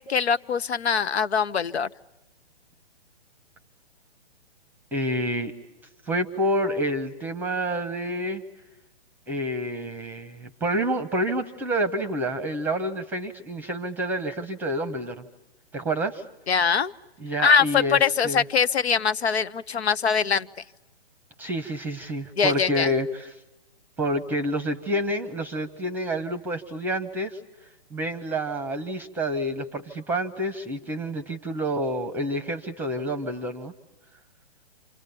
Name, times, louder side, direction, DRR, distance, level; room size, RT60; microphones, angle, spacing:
voice 1, 0.0-1.9 16.5-16.9 17.4-20.5 22.4-22.9, left 6 dB, 80° left, 16 dB, 1.0 m, -22 dB
voice 2, 4.9-5.5 6.1-8.4 9.3-15.2 15.7-16.2 17.2-18.4 21.4-23.4 24.0-27.4 27.9-33.7, right 1 dB, 5° right, 12 dB, 0.9 m, -28 dB
29.0 x 27.0 x 6.9 m, 0.96 s
hypercardioid pair, 145°, 32 cm